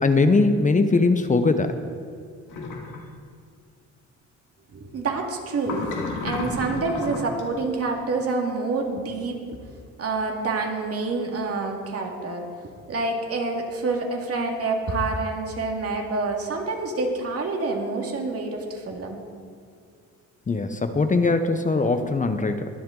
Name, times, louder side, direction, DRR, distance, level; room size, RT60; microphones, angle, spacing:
voice 1, 0.0-1.7 20.5-22.7, left 3 dB, 25° left, 8 dB, 0.8 m, -21 dB
sound 1, 2.5-3.0 5.6-7.4, left 4 dB, 80° left, 2.4 m, -31 dB
voice 2, 4.7-5.9 6.2-9.4 10.0-12.5 12.9-19.2, right 3 dB, 50° right, 1 dB, 2.3 m, -27 dB
22.0 x 7.6 x 3.9 m, 2.3 s
cardioid pair, 90°, 30 cm